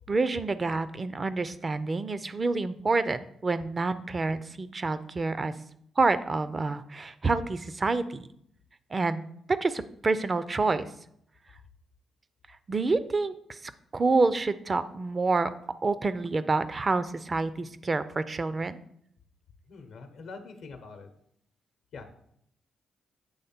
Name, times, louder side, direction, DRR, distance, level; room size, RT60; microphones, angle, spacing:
voice 1, 0.1-5.5 6.0-8.3 8.9-9.2 9.6-10.9 12.7-15.5 15.8-18.8, right 3 dB, 35° right, 14 dB, 0.4 m, -28 dB
voice 2, 19.7-21.1 21.9-22.1, left 4 dB, 75° left, 6 dB, 0.7 m, -44 dB
7.9 x 3.3 x 4.3 m, 0.71 s
supercardioid pair, 55°, 0 cm